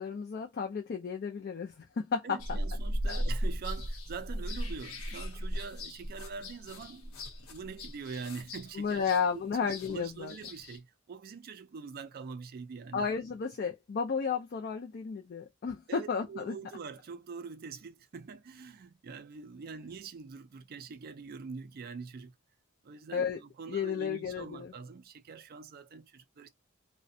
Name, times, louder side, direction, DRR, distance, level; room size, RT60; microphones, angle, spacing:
voice 1, 0.0-2.4 3.1-3.2 8.7-10.3 12.9-16.6 23.1-23.4 23.7-24.7, left 6 dB, 45° left, 0.4 m, -33 dB
voice 2, 2.2-7.2 7.5-9.0 9.3-13.1 15.9-22.3 22.8-26.5, right 5 dB, 45° right, 0.4 m, -44 dB
sound 1, 2.4-10.8, equal, 90° left, 0.7 m, -37 dB
2.4 x 2.1 x 2.6 m
head